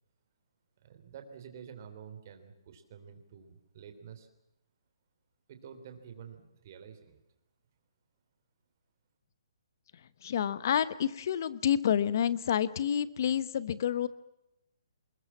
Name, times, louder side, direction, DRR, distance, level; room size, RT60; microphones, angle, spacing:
voice 1, 0.8-4.3 5.5-7.2, right 7 dB, 30° right, 7 dB, 3.3 m, -49 dB
voice 2, 10.2-14.1, left 9 dB, 40° left, 17 dB, 1.0 m, -29 dB
25.0 x 21.5 x 7.3 m, 0.86 s
hypercardioid pair, 175°, 3 cm